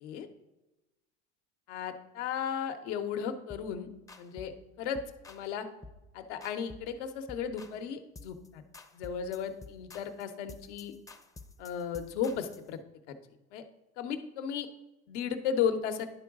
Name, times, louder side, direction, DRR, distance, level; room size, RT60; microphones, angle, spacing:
voice 1, 1.7-3.9 4.2-4.5 4.8-5.0 5.3-5.7 6.1-8.6 8.9-10.9 11.6-12.8 13.1-13.2 13.5-13.6 14.0-14.7 15.1-16.1, left 7 dB, 90° left, 7 dB, 0.9 m, -34 dB
sound 1, 3.5-3.7 4.1-4.6 4.9-5.5 5.8-6.1 6.4-7.0 7.3-7.8 8.2-8.5 8.7-12.7, left 3 dB, 10° left, 0.4 m, -51 dB
10.5 x 3.9 x 3.6 m, 1.0 s
supercardioid pair, 110°, 34 cm